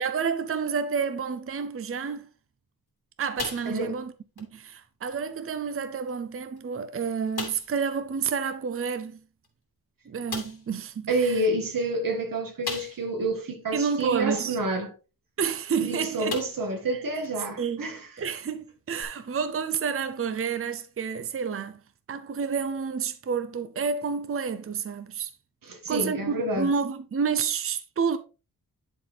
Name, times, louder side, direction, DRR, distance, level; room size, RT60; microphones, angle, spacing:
voice 1, 0.0-2.3 3.2-9.2 10.1-11.4 13.7-14.6 15.4-16.3 17.6-17.8 18.2-21.8 22.1-25.3 25.9-28.2, right 6 dB, 35° right, 0.6 m, -29 dB
sound 1, 3.4-4.1 4.4-4.5 5.1-5.2 6.1-6.2 6.6-6.7 7.3-7.8 9.4-9.5 10.3-10.7 12.6-13.2 13.7-13.8 15.6-15.8 16.3-16.8 17.2-17.3 19.0-19.1, left 4 dB, 90° left, 2.6 m, -36 dB
voice 2, 11.1-14.9 15.8-18.1 25.6-26.7, right 2 dB, 65° right, 1.8 m, -28 dB
10.5 x 4.1 x 3.2 m
wide cardioid pair, 120°, 36 cm